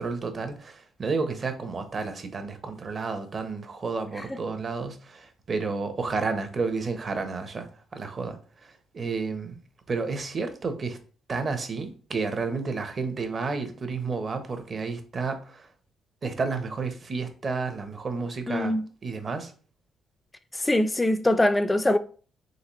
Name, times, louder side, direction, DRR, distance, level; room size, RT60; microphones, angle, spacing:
voice 1, 0.0-9.6 9.9-11.0 11.3-15.7 16.2-18.7 19.0-19.5, right 4 dB, 40° right, 0.8 m, -31 dB
voice 2, 18.5-18.8 20.5-22.0, left 1 dB, 15° left, 0.3 m, -23 dB
3.9 x 3.6 x 3.0 m
cardioid pair, 90°, 0 cm